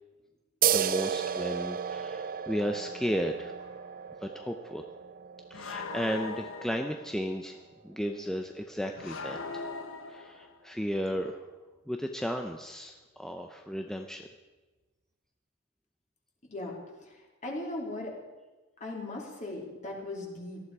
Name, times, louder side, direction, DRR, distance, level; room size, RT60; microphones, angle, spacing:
voice 1, 0.6-3.5 4.2-4.9 5.5-9.7 10.1-11.5 11.9-14.3, equal, ahead, 4 dB, 0.7 m, -34 dB
sound 1, 0.6-7.7, right 8 dB, 45° right, 0.6 m, -34 dB
sound 2, 3.6-3.8 5.5-7.2 9.0-10.7, left 4 dB, 65° left, 1.3 m, -40 dB
voice 2, 16.5-18.1 18.8-20.6, left 2 dB, 35° left, -1 dB, 3.3 m, -38 dB
18.5 x 13.5 x 4.8 m, 1.2 s
head